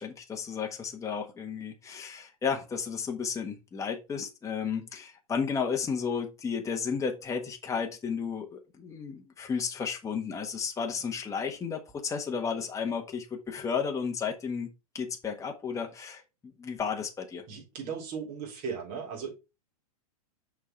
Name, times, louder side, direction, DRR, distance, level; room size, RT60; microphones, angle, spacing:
voice 1, 0.0-14.7 14.9-16.2 16.6-17.4, left 6 dB, 15° left, 1.3 m, -33 dB
voice 2, 17.5-19.3, right 6 dB, 45° right, 3.7 m, -37 dB
6.5 x 4.7 x 4.5 m
hypercardioid pair, 115°, 20 cm